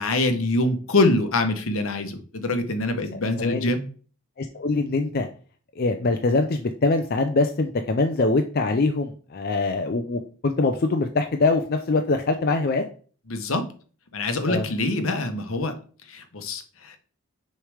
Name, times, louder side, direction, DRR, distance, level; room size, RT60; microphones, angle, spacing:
voice 1, 0.0-3.8 13.3-13.6 14.1-15.8 16.1-17.0, left 2 dB, 70° left, 7 dB, 0.9 m, -24 dB
voice 2, 3.1-3.7 4.4-5.3 5.8-12.8 14.5-14.7, left 3 dB, 45° left, 5 dB, 0.4 m, -23 dB
6.5 x 3.2 x 4.9 m, 0.41 s
head